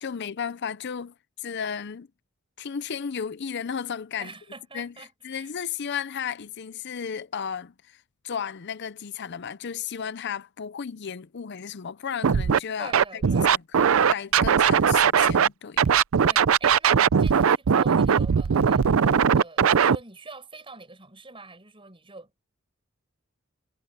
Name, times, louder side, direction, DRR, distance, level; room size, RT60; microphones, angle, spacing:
voice 1, 0.0-2.1 2.6-4.3 4.7-4.9 5.2-8.0 8.2-13.6 14.1-15.9, left 7 dB, 55° left, 0.5 m, -34 dB
voice 2, 4.2-5.5 12.8-13.6 16.2-22.4, right 3 dB, 25° right, 6.6 m, -45 dB
Scratching (performance technique), 12.2-12.6 12.9-15.5 15.8-20.0, right 7 dB, 80° right, 0.5 m, -19 dB
head